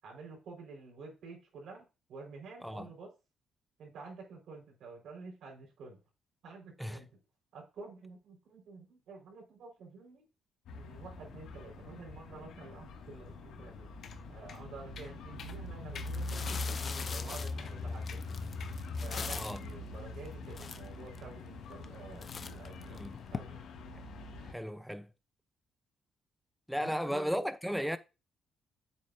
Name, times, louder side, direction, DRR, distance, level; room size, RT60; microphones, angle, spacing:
voice 1, 0.0-3.1 3.8-6.0 6.4-7.2 7.5-10.2 10.7-13.9 14.3-18.4 19.0-23.6 26.8-27.5, right 4 dB, 75° right, 5.0 m, -50 dB
sound 1, 10.7-24.5, left 3 dB, 80° left, 2.2 m, -42 dB
sound 2, 14.0-14.2 14.5-14.6 15.0-15.1 15.4-15.6 16.0-16.1 16.5-16.7 17.0-17.1 17.6-17.8 18.1-18.2 18.6-18.8, left 7 dB, 60° left, 1.2 m, -48 dB
sound 3, 15.4-15.5 16.0-19.7 20.3-20.4 20.5-21.2 21.7-22.0 22.2-23.4, left 5 dB, 40° left, 0.7 m, -42 dB
voice 2, 19.3-19.6 22.9-23.2 24.4-25.1 26.7-28.0, equal, ahead, 0.8 m, -35 dB
8.5 x 7.9 x 2.7 m
cardioid pair, 90°, 0 cm